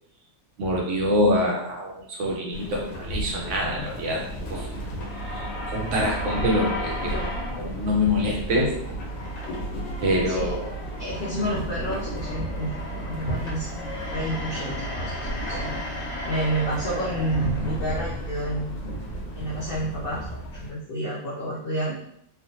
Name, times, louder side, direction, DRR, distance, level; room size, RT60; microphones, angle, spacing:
voice 1, 0.6-4.2 4.5-4.9 5.3-7.1 7.5-8.7 10.0-10.7, left 1 dB, 65° right, -2 dB, 0.8 m, -25 dB
sound 1, 2.5-20.7, equal, 70° left, 1.3 m, -35 dB
sound 2, 4.1-20.4, right 1 dB, 50° left, 0.9 m, -35 dB
voice 2, 11.0-15.2 15.5-15.8 16.3-19.0 19.4-20.3 20.5-22.0, right 1 dB, 85° left, -4 dB, 0.5 m, -30 dB
3.3 x 2.2 x 2.6 m, 0.73 s
omnidirectional pair, 1.6 m